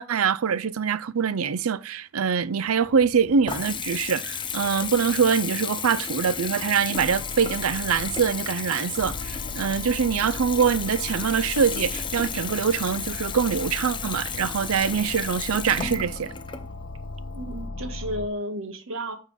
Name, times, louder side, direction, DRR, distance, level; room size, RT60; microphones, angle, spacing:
voice 1, 0.0-16.3, right 6 dB, 90° right, 0.5 m, -24 dB
Water tap faucet / Bathtub (filling or washing) / Trickle dribble, 2.8-17.7, left 7 dB, 25° left, 0.6 m, -34 dB
sound 1, 7.0-18.3, left 3 dB, 55° left, 0.8 m, -38 dB
voice 2, 17.3-19.2, equal, 70° right, 1.7 m, -32 dB
8.3 x 4.3 x 5.1 m
head